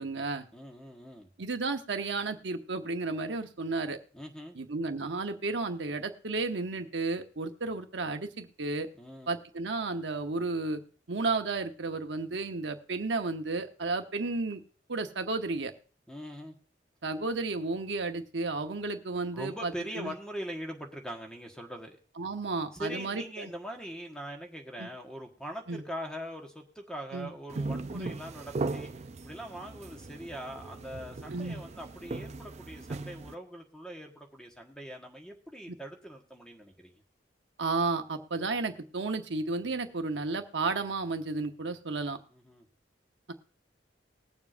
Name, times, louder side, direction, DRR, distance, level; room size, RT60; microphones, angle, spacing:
voice 1, 0.0-0.5 1.4-4.0 4.6-8.9 9.3-10.8 11.1-14.6 14.9-15.7 17.0-20.1 22.2-23.5 24.8-24.9 25.7-25.8 27.1-27.3 27.9-28.1 31.3-31.6 37.6-42.2, right 3 dB, 75° right, 6 dB, 1.0 m, -33 dB
voice 2, 0.5-1.3 4.1-4.6 9.0-9.4 16.1-16.6 19.3-22.0 22.7-28.9 29.2-37.0 42.3-42.7, equal, 5° left, 2 dB, 1.4 m, -42 dB
sound 1, 27.5-33.3, right 3 dB, 35° right, 0.4 m, -38 dB
20.5 x 7.2 x 2.6 m, 0.42 s
head